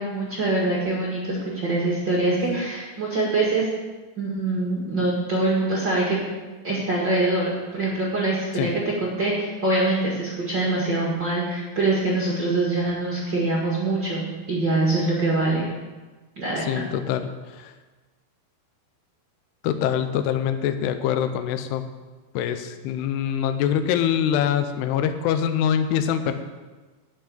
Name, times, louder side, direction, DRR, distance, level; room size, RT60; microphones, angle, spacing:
voice 1, 0.0-3.7 4.2-6.2 6.6-8.7 9.0-15.6 16.4-16.8, right 2 dB, 65° right, -4 dB, 1.1 m, -24 dB
voice 2, 16.6-17.7 19.6-21.8 22.3-26.3, left 9 dB, 75° left, 8 dB, 2.6 m, -24 dB
11.5 x 6.1 x 8.5 m, 1.3 s
omnidirectional pair, 5.3 m